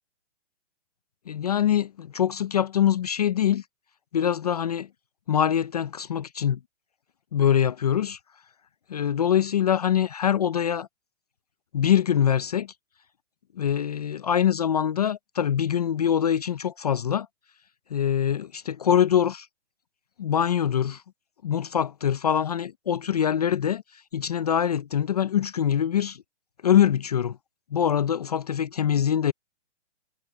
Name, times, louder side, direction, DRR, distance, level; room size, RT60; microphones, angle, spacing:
voice 1, 1.3-3.6 4.1-4.9 5.3-6.6 7.3-8.2 8.9-10.9 11.7-12.7 13.6-17.3 17.9-19.5 20.2-21.0 21.4-26.2 26.6-27.4 27.7-29.3, left 9 dB, 35° left, 0.5 m, -24 dB
hypercardioid pair, 165°, 36 cm